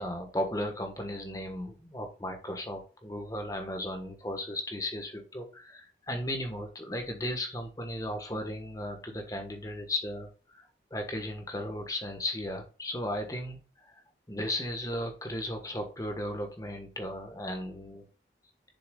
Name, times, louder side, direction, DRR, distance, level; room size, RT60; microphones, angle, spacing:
voice 1, 0.0-10.6 10.9-13.9 14.3-18.1, left 1 dB, 20° left, 4 dB, 1.3 m, -35 dB
6.9 x 6.4 x 2.3 m, 0.35 s
head